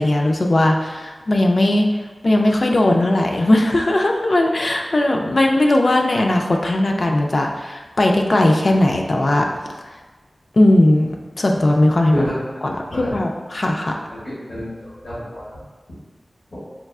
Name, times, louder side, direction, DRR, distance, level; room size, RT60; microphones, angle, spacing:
voice 1, 0.0-1.9 2.2-9.5 10.5-12.2 12.6-14.0, left 1 dB, 55° left, 2 dB, 0.3 m, -18 dB
voice 2, 14.1-15.5 16.5-16.6, equal, 85° left, -13 dB, 1.4 m, -28 dB
5.5 x 2.3 x 2.3 m, 1.3 s
wide cardioid pair, 75°, 0 cm